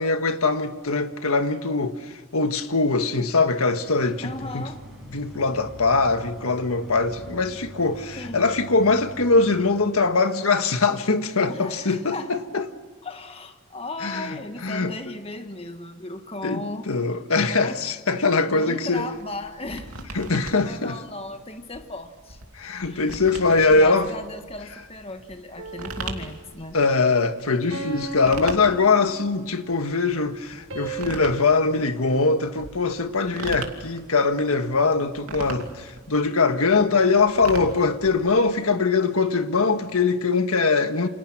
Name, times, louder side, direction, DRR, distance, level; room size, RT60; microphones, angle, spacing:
voice 1, 0.0-4.6 5.1-12.7 14.0-14.4 14.6-14.9 16.4-19.0 20.1-21.0 22.5-24.1 26.7-41.1, left 3 dB, 85° left, 1.6 m, -22 dB
sound 1, 3.5-10.1, equal, ahead, 5.7 m, -44 dB
voice 2, 4.2-4.8 8.2-8.5 11.5-12.3 13.0-16.9 17.4-17.8 18.5-20.1 20.6-22.4 22.8-23.2 23.7-26.8, left 2 dB, 25° left, 1.5 m, -36 dB
sound 2, 18.9-38.7, right 3 dB, 90° right, 2.8 m, -40 dB
sound 3, 25.6-26.6 27.7-29.6 30.7-31.1, right 3 dB, 60° right, 7.8 m, -36 dB
29.0 x 27.0 x 6.1 m
head